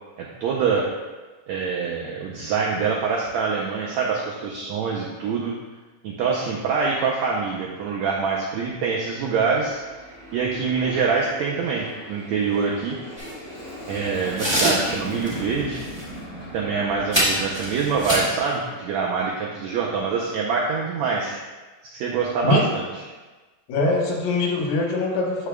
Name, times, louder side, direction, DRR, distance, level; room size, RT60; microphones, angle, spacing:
voice 1, 0.2-0.8 1.5-5.5 6.0-9.8 10.3-13.0 13.9-15.8 16.5-21.4 21.9-22.8, right 5 dB, 90° right, -2 dB, 1.5 m, -25 dB
Aircraft, 9.5-18.3, equal, 20° left, 2.1 m, -38 dB
sound 1, 13.2-13.3 14.4-14.9 15.2-15.4 15.7-16.0 17.1-18.4, equal, 10° right, 1.3 m, -24 dB
voice 2, 23.7-25.5, left 2 dB, 85° left, -1 dB, 2.9 m, -22 dB
13.0 x 4.9 x 2.3 m, 1.3 s
omnidirectional pair, 4.0 m